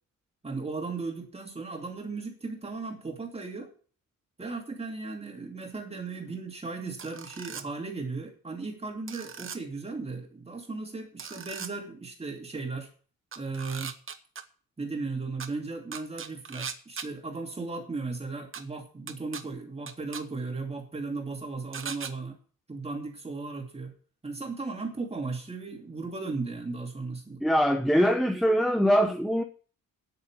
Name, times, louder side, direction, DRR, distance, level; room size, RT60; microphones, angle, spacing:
voice 1, 0.4-3.7 4.4-12.9 13.4-13.9 14.8-22.4 22.7-23.9 24.2-27.4, right 3 dB, 20° right, 2.7 m, -36 dB
sound 1, 7.0-7.6 9.1-9.6 11.2-11.7 13.3-14.4 15.4-15.5 15.9-17.1 18.5-18.6 19.1-19.4 19.9-20.2 21.7-22.1, right 6 dB, 40° right, 1.1 m, -38 dB
voice 2, 27.4-29.4, equal, ahead, 0.8 m, -23 dB
9.6 x 8.5 x 7.4 m
wide cardioid pair, 155°, 34 cm